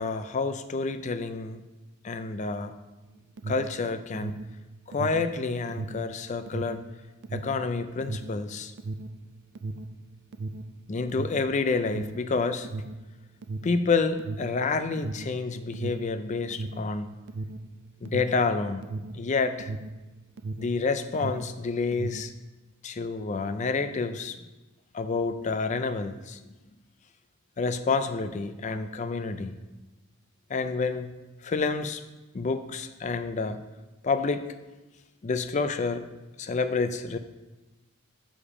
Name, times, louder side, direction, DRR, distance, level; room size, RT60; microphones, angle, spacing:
voice 1, 0.0-1.6 2.0-2.7 3.5-4.4 4.9-6.8 7.3-8.7 10.9-12.7 13.6-17.1 18.0-18.9 19.1-19.7 20.6-22.3 22.8-24.4 24.9-26.4 27.6-29.6 30.5-31.1 31.4-32.0 32.3-33.6 34.0-34.4 35.2-36.1 36.4-37.2, left 4 dB, 35° left, 10 dB, 0.4 m, -29 dB
Alarm, 3.0-20.8 21.1-22.4, right 2 dB, 50° right, 0.4 m, -37 dB
7.1 x 5.0 x 4.9 m, 1.1 s
head